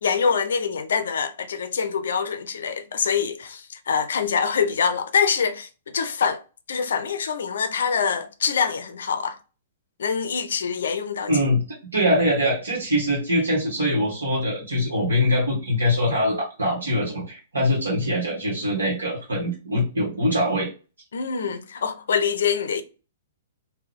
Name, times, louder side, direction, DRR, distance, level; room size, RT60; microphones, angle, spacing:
voice 1, 0.0-6.4 6.7-9.4 10.0-11.3 21.1-22.8, left 6 dB, 60° left, 0.5 m, -25 dB
voice 2, 11.3-20.7, left 1 dB, 70° right, 1.2 m, -23 dB
3.5 x 2.2 x 3.6 m
figure-of-eight pair, 110°, 0 cm